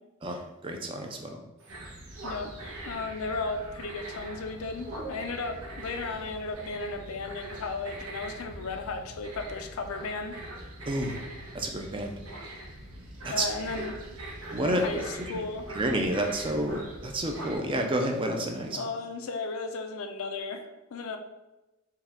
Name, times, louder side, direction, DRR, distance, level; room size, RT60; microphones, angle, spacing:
voice 1, 0.2-1.4 10.9-11.2 11.5-12.2 13.2-13.5 13.8-13.9 14.5-15.4 15.7-18.8, right 1 dB, 25° right, 3 dB, 0.4 m, -30 dB
sound 1, 1.6-7.2, right 3 dB, 65° right, 1.2 m, -50 dB
sound 2, 1.7-17.6, right 1 dB, 85° right, 0.9 m, -42 dB
voice 2, 2.2-2.5 2.8-10.4 13.3-14.0 14.6-15.7 18.7-21.2, left 3 dB, 75° left, 6 dB, 0.4 m, -35 dB
4.6 x 2.3 x 3.5 m, 1.0 s
head